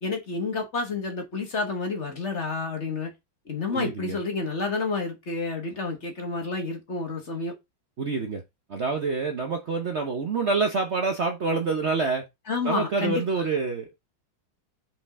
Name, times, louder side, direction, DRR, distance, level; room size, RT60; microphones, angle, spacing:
voice 1, 0.0-3.1 3.4-7.5 12.5-13.5, left 3 dB, 40° left, 1.5 m, -30 dB
voice 2, 3.7-4.2 8.0-8.4 8.7-12.3 12.6-13.9, right 4 dB, 50° right, 0.9 m, -27 dB
5.2 x 5.1 x 3.6 m
omnidirectional pair, 2.0 m